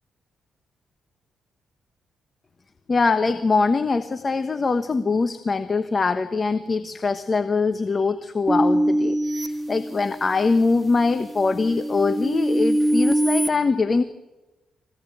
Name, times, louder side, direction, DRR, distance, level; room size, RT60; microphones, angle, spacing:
voice 1, 2.9-14.0, left 4 dB, 35° left, 10 dB, 1.2 m, -23 dB
sound 1, 8.5-10.4 11.0-13.5, equal, 20° right, 2.0 m, -23 dB
24.5 x 16.5 x 8.6 m, 1.1 s
cardioid pair, 75°, 0 cm